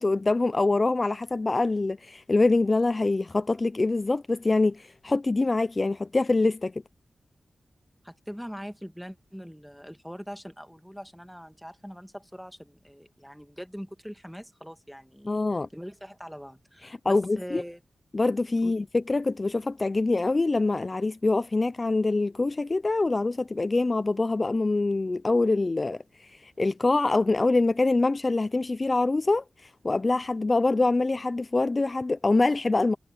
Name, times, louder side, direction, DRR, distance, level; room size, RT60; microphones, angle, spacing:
voice 1, 0.0-6.7 15.3-15.7 16.8-17.6 18.1-33.0, left 3 dB, 35° left, 0.4 m, -25 dB
voice 2, 8.0-17.8 18.6-18.8, equal, ahead, 1.9 m, -42 dB
cardioid pair, 65°, 0 cm